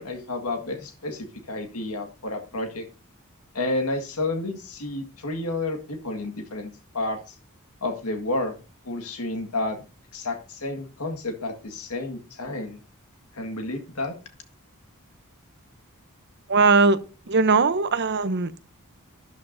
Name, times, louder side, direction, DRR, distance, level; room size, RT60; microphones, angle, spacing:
voice 1, 0.0-2.9 3.5-7.4 7.8-8.5 8.9-9.8 10.1-12.8 13.3-14.2, left 2 dB, 90° left, 1.8 m, -30 dB
voice 2, 16.5-17.0 17.3-18.6, right 4 dB, 50° right, 0.8 m, -20 dB
12.5 x 11.0 x 2.7 m
head